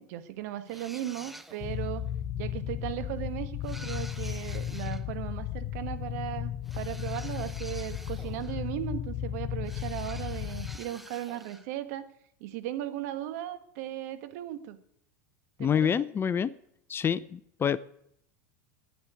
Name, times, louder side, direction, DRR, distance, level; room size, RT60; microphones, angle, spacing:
voice 1, 0.0-2.0 2.3-12.1 12.4-14.8 15.6-15.9, right 13 dB, 65° right, 1.5 m, -37 dB
sound 1, 0.7-1.8 3.6-5.0 6.6-8.7 9.7-11.7, equal, ahead, 0.9 m, -48 dB
sound 2, 1.6-10.8, left 11 dB, 45° left, 1.0 m, -35 dB
voice 2, 15.6-16.5 16.9-17.8, left 8 dB, 25° left, 0.5 m, -27 dB
10.5 x 8.8 x 9.4 m
hypercardioid pair, 105°, 9 cm